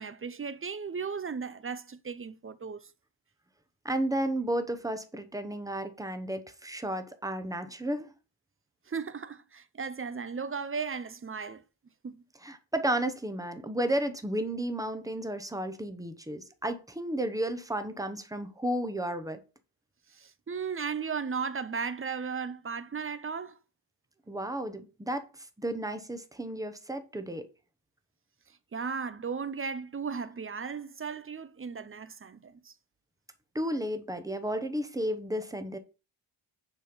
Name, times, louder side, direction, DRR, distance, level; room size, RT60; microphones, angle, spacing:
voice 1, 0.0-2.8 8.9-11.6 12.0-12.2 20.1-23.6 28.7-32.7, right 5 dB, 30° right, 0.5 m, -36 dB
voice 2, 3.8-8.1 12.4-19.4 24.3-27.5 33.5-35.8, right 1 dB, 5° right, 0.9 m, -33 dB
9.8 x 4.4 x 5.2 m
wide cardioid pair, 175°, 50 cm